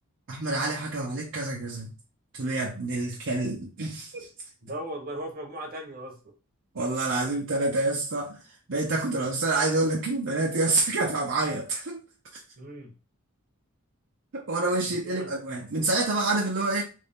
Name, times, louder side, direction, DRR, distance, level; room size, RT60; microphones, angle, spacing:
voice 1, 0.3-1.9 2.3-4.3 6.7-8.4 8.7-12.0 14.3-16.8, right 2 dB, 60° right, 0.7 m, -27 dB
voice 2, 4.6-6.2 12.6-12.9 15.0-15.3, right 1 dB, 40° right, 1.0 m, -37 dB
3.2 x 2.6 x 3.5 m
head